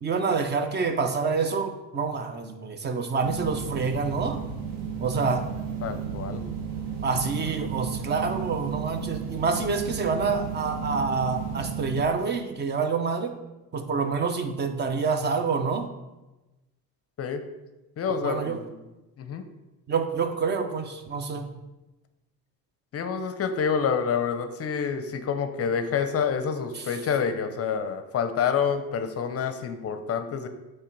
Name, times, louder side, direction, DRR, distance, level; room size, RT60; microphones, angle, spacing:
voice 1, 0.0-4.4 5.0-5.4 7.0-13.3 13.7-15.9 18.2-18.6 19.9-21.5 26.8-26.9, right 4 dB, 30° right, 7 dB, 0.6 m, -27 dB
sound 1, 3.2-12.0, right 7 dB, 65° right, 1.3 m, -33 dB
voice 2, 5.8-6.4 17.2-17.5 18.0-18.8 19.2-19.5 22.9-30.5, left 6 dB, 40° left, 9 dB, 0.6 m, -28 dB
8.3 x 3.3 x 4.6 m, 1.1 s
cardioid pair, 130°, 37 cm